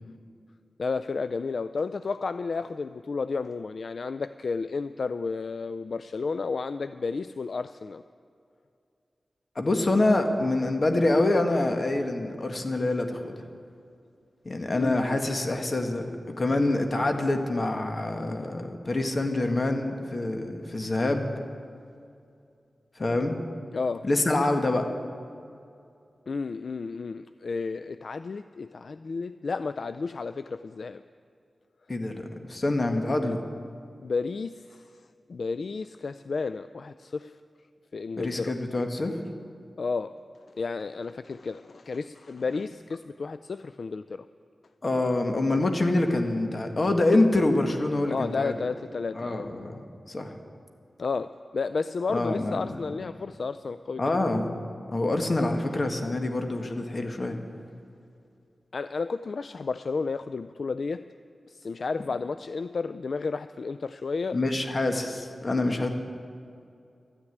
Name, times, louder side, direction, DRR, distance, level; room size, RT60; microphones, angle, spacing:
voice 1, 0.8-8.0 14.7-15.2 23.7-24.1 26.3-31.0 34.0-34.9 35.3-37.4 37.9-38.5 39.8-40.1 40.6-44.3 48.1-49.5 51.0-54.0 58.7-61.1 61.5-64.4 65.7-65.9, left 4 dB, 70° left, 12 dB, 0.3 m, -32 dB
voice 2, 9.5-13.4 14.4-16.1 16.4-21.3 23.0-23.4 24.0-24.8 31.9-33.4 38.2-39.2 44.8-48.5 49.1-50.4 52.1-53.0 54.0-54.5 54.9-57.4 64.3-65.9, left 2 dB, 50° left, 5 dB, 1.6 m, -26 dB
13.0 x 9.9 x 9.2 m, 2.4 s
cardioid pair, 55°, 0 cm